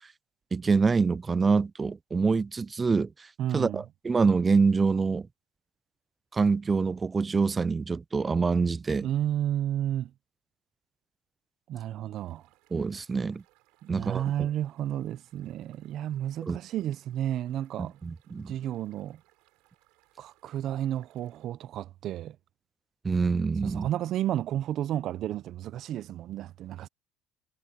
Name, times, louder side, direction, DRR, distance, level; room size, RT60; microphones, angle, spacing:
voice 1, 0.5-3.1 3.5-5.3 6.3-9.1 12.7-13.4 13.9-14.2 16.5-16.6 17.8-18.5 23.0-23.9, right 4 dB, 25° right, 0.3 m, -25 dB
voice 2, 3.4-3.8 9.0-10.1 11.7-12.4 13.8-18.0 18.3-19.2 20.2-22.4 23.6-26.9, right 11 dB, 60° right, 0.8 m, -32 dB
sound 1, 12.1-21.5, right 23 dB, 85° right, 5.8 m, -67 dB
supercardioid pair, 95°, 0 cm